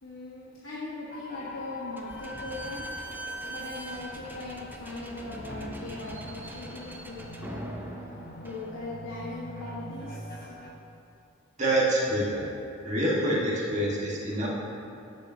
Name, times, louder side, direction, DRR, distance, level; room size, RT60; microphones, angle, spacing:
voice 1, 0.0-2.8 3.5-7.8 8.4-10.5, left 2 dB, 85° left, -8 dB, 1.4 m, -39 dB
sound 1, 1.1-10.7, left 1 dB, 50° left, 1.0 m, -44 dB
Slam / Squeak, 2.0-9.2, right 1 dB, 10° right, 0.5 m, -42 dB
voice 2, 11.6-12.4 12.8-14.5, right 1 dB, 35° right, -5 dB, 1.6 m, -26 dB
13.5 x 7.2 x 2.8 m, 2.6 s
head